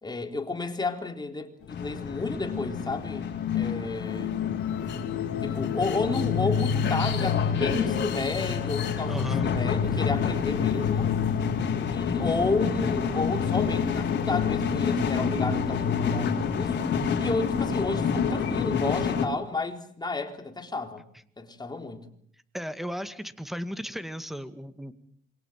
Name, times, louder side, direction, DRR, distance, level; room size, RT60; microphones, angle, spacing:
voice 1, 0.0-3.3 3.5-4.3 5.4-11.1 11.9-16.9 17.2-21.0 21.4-22.0, left 3 dB, 20° left, 3.9 m, -32 dB
sound 1, 1.6-16.3, left 8 dB, 90° left, 2.6 m, -31 dB
sound 2, 1.7-19.2, left 6 dB, 60° left, 4.6 m, -29 dB
voice 2, 9.1-9.5 22.5-24.9, equal, ahead, 2.1 m, -35 dB
sound 3, 9.8-16.6, left 5 dB, 45° left, 4.1 m, -36 dB
27.5 x 23.0 x 7.6 m
cardioid pair, 90°, 20 cm